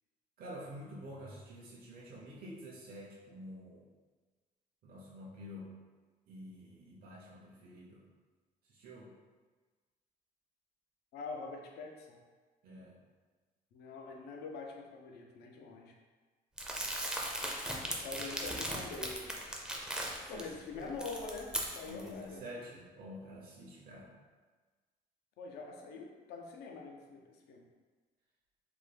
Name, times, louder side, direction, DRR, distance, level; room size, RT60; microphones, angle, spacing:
voice 1, 0.4-3.9 4.8-5.7 6.3-8.0 8.7-9.1 12.6-13.0 16.7-16.9 20.3-21.0 21.9-24.1, equal, 60° right, -4 dB, 0.6 m, -48 dB
voice 2, 11.1-12.2 13.7-16.0 17.8-19.5 20.3-22.5 25.4-27.7, left 4 dB, 75° left, 1 dB, 0.5 m, -45 dB
Crumpling crinkling, 16.6-20.4 20.8-22.1, right 1 dB, 5° right, 0.4 m, -38 dB
3.3 x 2.1 x 3.3 m, 1.3 s
cardioid pair, 110°, 17 cm